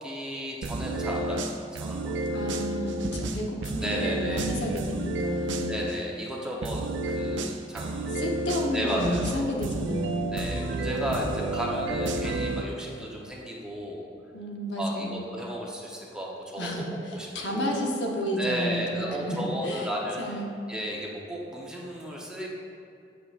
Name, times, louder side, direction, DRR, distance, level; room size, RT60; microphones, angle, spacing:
voice 1, 0.0-2.2 3.8-4.5 5.7-8.3 8.7-9.5 10.3-14.1 14.8-16.7 17.1-17.3 17.5-18.0 18.4-20.4 20.7-22.5, equal, 5° right, -4 dB, 0.7 m, -34 dB
sound 1, 0.6-6.0 6.6-12.6, right 2 dB, 90° right, 0.5 m, -31 dB
voice 2, 2.3-5.7 8.2-10.4 14.3-15.2 16.6-19.9 20.2-20.5, equal, 70° left, 0 dB, 0.9 m, -31 dB
7.7 x 6.7 x 2.4 m, 2.6 s
head